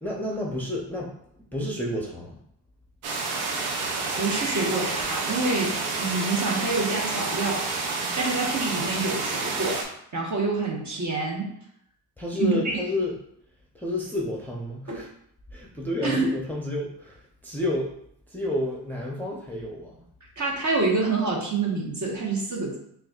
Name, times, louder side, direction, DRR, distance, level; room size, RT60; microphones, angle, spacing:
voice 1, 0.0-1.1 1.5-2.4 12.2-13.2 13.7-15.1 15.5-17.9 18.3-20.0, left 1 dB, 5° left, -4 dB, 0.7 m, -30 dB
sound 1, 3.0-9.8, right 3 dB, 85° right, 0.8 m, -29 dB
voice 2, 4.2-7.7 8.2-9.9 10.1-11.5 12.4-12.6 14.9-15.0 16.0-16.3 20.4-22.8, right 3 dB, 35° right, -2 dB, 1.3 m, -27 dB
5.6 x 2.5 x 2.4 m, 0.70 s
cardioid pair, 75°, 48 cm